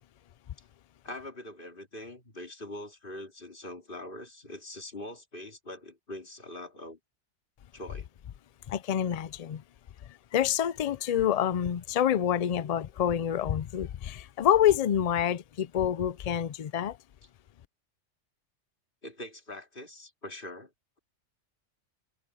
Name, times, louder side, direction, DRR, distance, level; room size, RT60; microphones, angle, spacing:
voice 1, 1.0-7.0 7.7-8.1 19.0-20.7, left 1 dB, 45° left, 3.0 m, -43 dB
voice 2, 8.7-9.6 10.3-17.0, left 10 dB, 75° left, 0.3 m, -27 dB
omnidirectional pair, 1.2 m